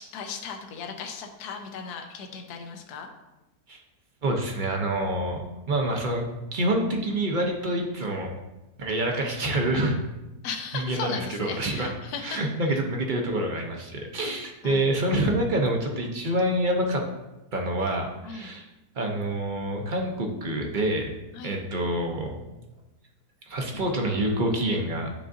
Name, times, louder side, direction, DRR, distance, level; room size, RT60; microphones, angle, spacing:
voice 1, 0.0-3.1 10.4-12.4 14.6-14.8 18.2-18.5 21.3-21.5, left 6 dB, 80° left, 4 dB, 1.2 m, -36 dB
voice 2, 4.2-5.4 5.7-6.2 6.5-8.3 8.8-10.0 10.7-17.0 17.5-18.7 18.9-21.1 21.4-22.4 23.5-25.1, right 1 dB, 50° right, 1 dB, 0.6 m, -27 dB
10.0 x 3.8 x 2.6 m, 1.0 s
omnidirectional pair, 1.7 m